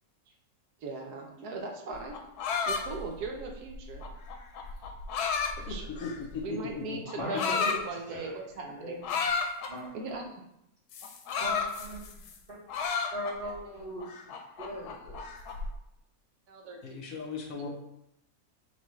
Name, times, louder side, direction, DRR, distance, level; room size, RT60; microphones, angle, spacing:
voice 1, 0.8-2.2 2.7-4.1 5.7-6.1 6.4-9.0 9.9-10.2 16.5-17.0 17.5-17.7, right 3 dB, 85° right, 2 dB, 1.3 m, -39 dB
sound 1, 1.9-6.4 7.1-7.8 9.0-9.7 10.9-12.4 12.7-13.5 14.0-15.7, left 5 dB, 90° left, 1.2 m, -32 dB
voice 2, 5.7-7.0 7.3-7.4 16.8-17.7, left 4 dB, 65° left, 1 dB, 1.1 m, -37 dB
voice 3, 7.2-7.8 8.1-8.3 8.6-9.2 9.7-9.9 11.4-12.1 12.5-12.6 13.1-14.1 14.6-15.2, equal, 35° right, -8 dB, 2.0 m, -38 dB
4.2 x 4.0 x 3.1 m, 0.81 s
omnidirectional pair, 1.6 m